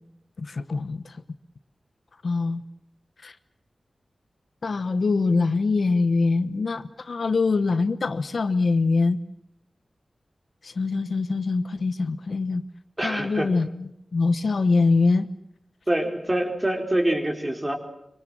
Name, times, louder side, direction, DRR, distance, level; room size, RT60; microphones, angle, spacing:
voice 1, 0.4-1.1 2.2-2.6 3.2-3.3 4.6-9.2 10.6-12.6 13.0-15.3, left 3 dB, 70° left, 12 dB, 1.1 m, -23 dB
voice 2, 13.0-13.5 15.9-17.8, right 1 dB, 15° right, 3 dB, 4.4 m, -25 dB
25.5 x 25.0 x 7.7 m, 0.80 s
wide cardioid pair, 100°, 0 cm